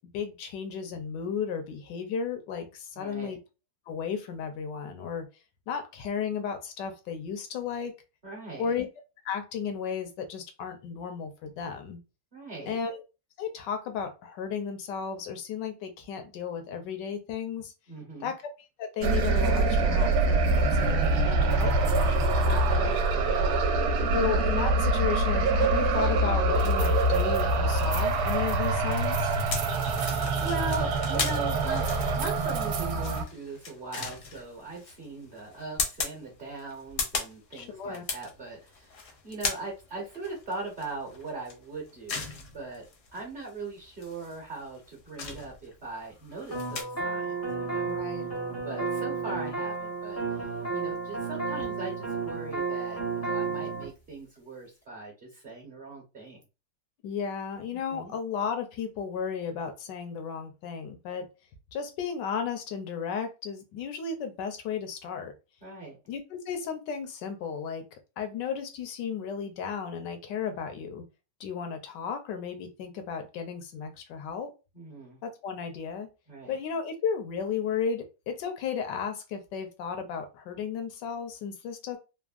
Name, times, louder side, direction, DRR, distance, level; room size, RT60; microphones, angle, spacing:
voice 1, 0.1-3.4 3.9-5.2 5.7-8.0 8.6-8.9 9.2-12.0 12.7-13.0 13.4-17.7 18.2-18.4 18.8-23.0 24.1-29.3 37.5-38.0 47.8-48.3 57.0-61.3 61.7-65.3 66.1-71.0 71.4-74.5 75.2-76.1 76.5-82.0, left 6 dB, 80° left, 6 dB, 1.3 m, -34 dB
voice 2, 2.9-3.4 8.2-8.7 12.3-12.8 17.9-18.3 22.4-24.1 29.7-31.9 32.2-42.3 42.5-42.8 43.1-47.9 48.6-56.4 57.7-58.1 65.6-66.0 74.7-75.2 76.3-76.5, right 3 dB, 40° right, -2 dB, 0.9 m, -40 dB
sound 1, 19.0-33.2, right 2 dB, 70° right, 1.1 m, -25 dB
sound 2, 29.5-46.8, left 4 dB, 60° left, 0.9 m, -38 dB
sound 3, 46.5-53.9, right 4 dB, 20° left, 0.4 m, -32 dB
3.4 x 2.1 x 2.4 m, 0.29 s
omnidirectional pair, 1.9 m